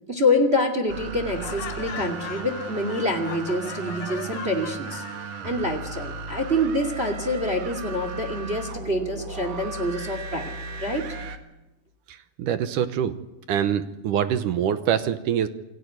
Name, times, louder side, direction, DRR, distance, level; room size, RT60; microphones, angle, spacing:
voice 1, 0.1-5.0 5.4-10.5 10.8-11.0, left 1 dB, 20° right, 6 dB, 2.2 m, -26 dB
sound 1, 0.9-11.4, right 4 dB, 55° right, 2.6 m, -36 dB
Laughter, 1.2-5.3, left 9 dB, 65° left, 2.5 m, -38 dB
voice 2, 12.1-13.1 13.5-15.5, right 9 dB, 70° right, 11 dB, 2.3 m, -25 dB
28.5 x 19.0 x 9.4 m, 1.0 s
omnidirectional pair, 4.3 m